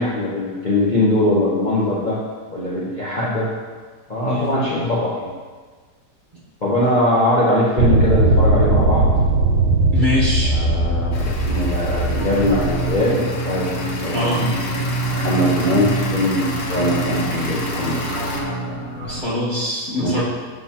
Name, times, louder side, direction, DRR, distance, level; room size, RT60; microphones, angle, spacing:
voice 1, 0.0-2.2 2.5-3.5 4.1-5.3 6.6-9.1 10.1-13.7 14.0-14.4 15.1-18.0 20.0-20.2, left 1 dB, 35° left, -7 dB, 0.8 m, -21 dB
voice 2, 4.3-4.9 9.9-10.6 14.1-14.6 17.3-17.5 19.0-20.2, left 2 dB, 30° right, -8 dB, 1.5 m, -24 dB
sound 1, 7.8-12.9, right 2 dB, 80° right, 1.2 m, -18 dB
sound 2, 11.1-18.4, equal, 85° left, 1.5 m, -29 dB
sound 3, 12.0-19.2, right 2 dB, 55° left, 1.7 m, -27 dB
7.2 x 5.7 x 2.9 m, 1.4 s
omnidirectional pair, 1.8 m